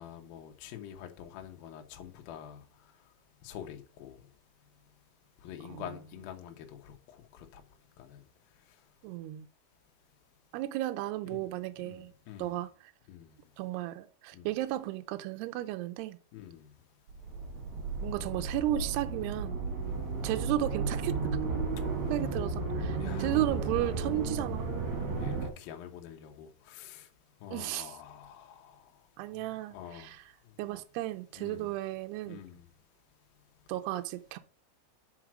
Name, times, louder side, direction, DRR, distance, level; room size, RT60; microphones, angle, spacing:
voice 1, 0.0-3.1 3.4-4.3 5.4-7.6 8.0-8.2 8.5-8.8 11.3-11.5 11.8-12.6 13.1-13.5 14.3-14.5 16.3-16.7 19.8-20.2 21.9-22.1 23.0-23.4 24.0-24.1 25.2-27.1 27.4-29.4 29.7-30.1 30.4-30.6 31.4-31.7 32.3-32.7, left 10 dB, 75° left, 2.1 m, -47 dB
voice 2, 9.0-9.5 10.5-12.1 12.4-12.9 13.6-16.2 18.0-19.6 20.2-21.2 22.1-24.7 27.5-28.0 29.2-30.2 30.6-32.4 33.7-34.4, right 14 dB, 85° right, 2.3 m, -34 dB
sound 1, 17.1-25.5, right 3 dB, 55° right, 2.0 m, -33 dB
6.1 x 5.1 x 6.1 m
omnidirectional pair, 5.4 m